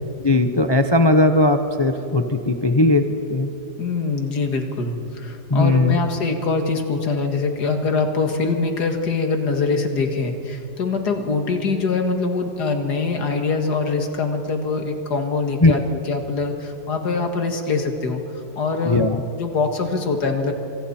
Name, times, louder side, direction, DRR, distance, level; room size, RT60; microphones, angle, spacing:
voice 1, 0.2-3.5 5.5-6.0 15.6-15.7 18.9-19.2, left 2 dB, 35° left, 7 dB, 0.4 m, -18 dB
voice 2, 3.8-20.5, left 4 dB, 65° left, 5 dB, 2.3 m, -23 dB
25.5 x 25.0 x 4.3 m, 2.9 s
omnidirectional pair, 1.9 m